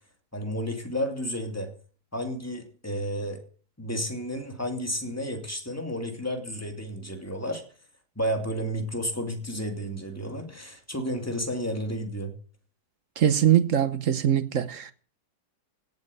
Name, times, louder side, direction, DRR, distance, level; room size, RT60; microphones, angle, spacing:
voice 1, 0.3-1.7 2.1-3.4 3.8-7.6 8.1-12.3, equal, 10° left, 2.9 m, -31 dB
voice 2, 13.2-14.9, right 10 dB, 50° right, 1.2 m, -22 dB
17.5 x 7.8 x 9.4 m
omnidirectional pair, 1.9 m